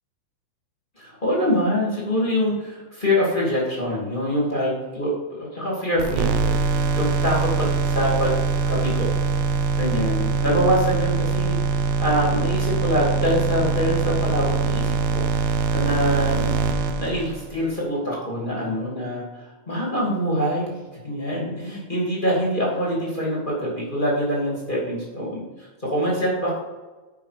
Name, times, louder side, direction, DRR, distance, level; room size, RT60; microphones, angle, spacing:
voice 1, 1.0-8.4 8.6-9.1 9.8-16.5 17.0-20.8 21.0-25.4 25.8-26.6, equal, 25° left, -5 dB, 1.1 m, -25 dB
sound 1, 6.0-17.7, right 4 dB, 80° right, 2.5 m, -23 dB
11.5 x 5.5 x 5.1 m, 1.2 s
omnidirectional pair, 5.6 m